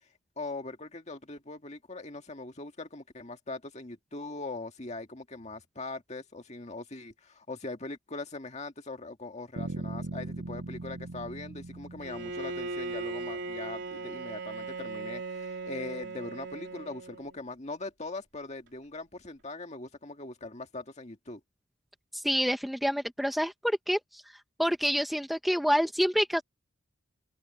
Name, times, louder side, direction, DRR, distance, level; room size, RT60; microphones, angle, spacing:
voice 1, 0.4-21.4, left 2 dB, 30° left, 1.9 m, -41 dB
sound 1, 9.6-13.5, right 2 dB, 75° right, 0.9 m, -40 dB
Bowed string instrument, 12.0-17.4, right 3 dB, 55° right, 3.7 m, -38 dB
voice 2, 22.1-24.2 24.6-26.4, equal, ahead, 0.9 m, -27 dB
head